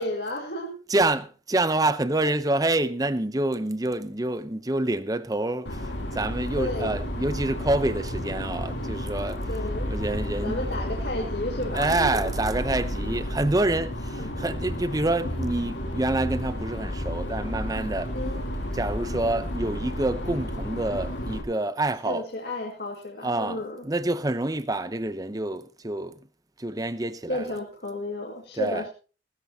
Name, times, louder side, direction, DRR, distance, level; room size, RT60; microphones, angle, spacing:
voice 1, 0.0-0.8 6.6-6.9 9.5-9.9 10.4-12.2 14.1-14.4 18.1-18.4 22.1-23.8 27.3-28.9, left 1 dB, 60° left, 2.2 m, -32 dB
voice 2, 0.9-9.4 9.9-10.7 11.7-18.2 18.7-22.3 23.2-26.2 26.6-27.6 28.6-28.8, right 2 dB, 20° right, 0.8 m, -27 dB
sound 1, 5.7-21.4, equal, 80° left, 3.3 m, -32 dB
18.5 x 13.5 x 2.9 m
head